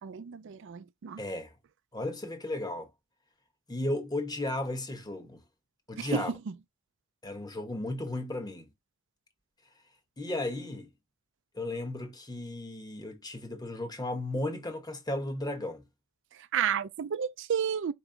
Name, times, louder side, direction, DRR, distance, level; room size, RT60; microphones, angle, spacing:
voice 1, 0.0-1.2 6.0-6.2 16.5-17.9, right 8 dB, 60° right, 0.4 m, -31 dB
voice 2, 1.2-1.5 1.9-2.9 3.7-5.4 5.9-6.3 7.2-8.7 10.2-10.9 11.5-15.8, left 1 dB, 20° left, 1.0 m, -34 dB
4.6 x 3.0 x 3.8 m
head